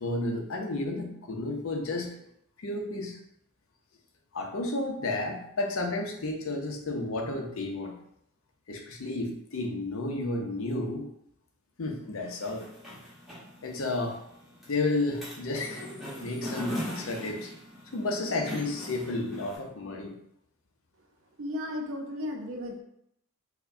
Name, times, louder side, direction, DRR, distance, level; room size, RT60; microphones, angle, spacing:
voice 1, 0.0-2.1 2.6-3.2 4.3-7.9 8.7-11.1 11.8-12.7 13.6-14.2 14.7-15.8 16.2-17.5 17.9-20.1, left 2 dB, 70° left, 2 dB, 0.6 m, -32 dB
sound 1, 12.3-19.6, left 1 dB, ahead, 0.9 m, -40 dB
voice 2, 21.4-22.8, left 1 dB, 65° right, 2 dB, 0.6 m, -34 dB
4.5 x 2.1 x 2.6 m, 0.75 s
head